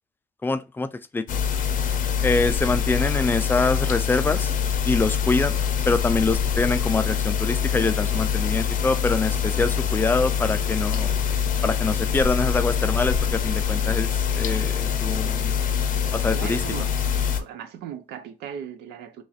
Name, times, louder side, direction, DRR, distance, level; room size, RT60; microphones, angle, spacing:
voice 1, 0.4-1.4 2.2-4.5 4.9-5.6 5.9-11.2 11.6-15.6 16.1-16.6, left 3 dB, 10° left, 0.3 m, -25 dB
sound 1, 1.3-17.4, left 8 dB, 50° left, 0.6 m, -24 dB
voice 2, 16.3-16.9 17.4-19.2, right 8 dB, 80° right, 0.6 m, -37 dB
3.0 x 2.5 x 3.9 m
cardioid pair, 110°, 17 cm